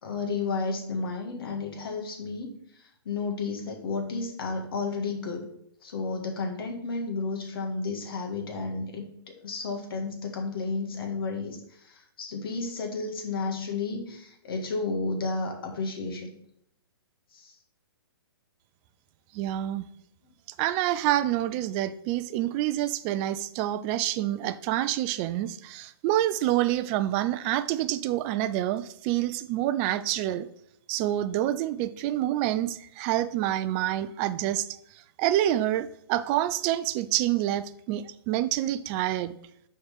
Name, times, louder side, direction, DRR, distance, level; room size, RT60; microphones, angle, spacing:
voice 1, 0.0-2.6 3.1-5.5 5.8-16.3 17.3-17.5, left 4 dB, 60° left, 3 dB, 1.8 m, -32 dB
voice 2, 19.3-19.9 20.6-30.5 30.9-34.7 35.2-39.3, right 13 dB, 30° right, 13 dB, 0.4 m, -27 dB
6.4 x 4.5 x 5.6 m, 0.74 s
hypercardioid pair, 130°, 13 cm